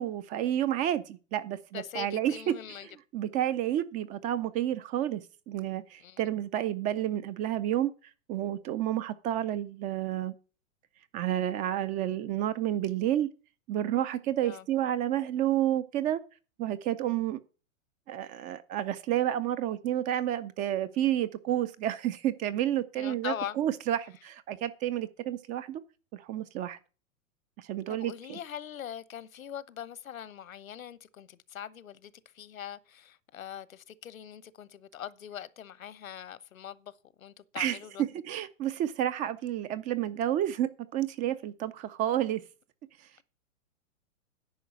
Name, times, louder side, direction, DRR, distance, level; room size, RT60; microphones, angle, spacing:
voice 1, 0.0-7.9 8.3-10.3 11.1-13.3 13.7-16.2 16.6-17.4 18.1-25.8 26.1-26.8 27.6-28.4 37.6-37.8 38.3-42.4, right 12 dB, 20° right, 0.4 m, -30 dB
voice 2, 1.7-2.9 6.0-6.2 14.4-14.7 22.9-23.6 27.9-38.0, left 10 dB, 80° left, 1.1 m, -42 dB
10.0 x 5.4 x 8.4 m
hypercardioid pair, 115°, 40 cm